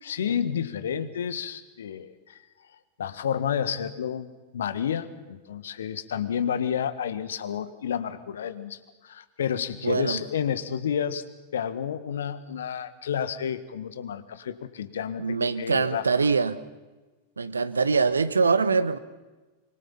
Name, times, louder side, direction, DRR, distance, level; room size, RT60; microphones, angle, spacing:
voice 1, 0.0-2.4 3.0-4.3 4.5-11.2 11.5-16.1, left 8 dB, 65° left, 13 dB, 1.5 m, -30 dB
voice 2, 9.8-10.2 15.2-16.6 17.4-19.0, right 4 dB, 75° right, 14 dB, 1.1 m, -23 dB
25.5 x 24.0 x 5.7 m, 1.2 s
figure-of-eight pair, 90°, 0 cm